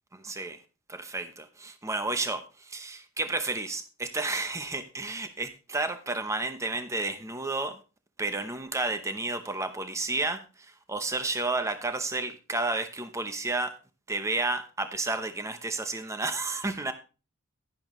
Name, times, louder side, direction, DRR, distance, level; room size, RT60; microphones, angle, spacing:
voice 1, 0.1-0.6 0.9-7.8 8.2-13.7 14.1-16.9, right 2 dB, 15° right, 0.7 m, -31 dB
10.5 x 10.5 x 3.1 m
head